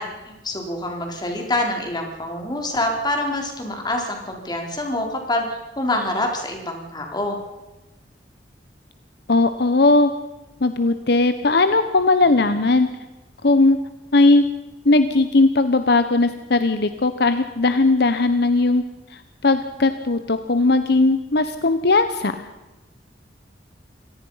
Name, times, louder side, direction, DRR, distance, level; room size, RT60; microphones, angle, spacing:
voice 1, 0.0-7.4, left 1 dB, 25° left, 2 dB, 4.2 m, -26 dB
voice 2, 9.3-10.1 10.6-12.9 13.4-13.8 14.1-14.5 14.8-18.8 19.1-22.3, left 2 dB, 65° left, 10 dB, 1.0 m, -18 dB
25.0 x 18.0 x 5.7 m, 1.1 s
head